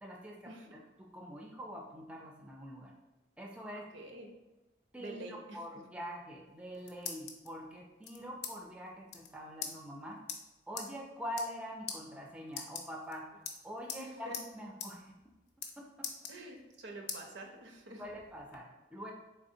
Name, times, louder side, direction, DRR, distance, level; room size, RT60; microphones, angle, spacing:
voice 1, 0.0-2.9 3.4-3.8 4.9-10.2 10.7-13.3 13.6-15.2 15.8-16.1 18.0-19.1, equal, 5° right, 0 dB, 0.3 m, -45 dB
voice 2, 3.9-4.3 5.0-5.8 14.0-14.4 16.3-18.0, right 2 dB, 80° right, 3 dB, 0.6 m, -47 dB
sound 1, 6.5-7.5 8.0-8.5 8.8-8.9 9.1-9.3 9.6-9.7 10.3-10.4 10.8-10.9 11.3-11.6 11.9-12.0 12.5-13.1 13.5-14.0 14.3-14.5 14.8-14.9 15.2-15.7 16.0-16.7 17.1-17.2 17.7-18.6, left 7 dB, 60° left, 0.5 m, -41 dB
3.5 x 3.4 x 2.7 m, 1.0 s
head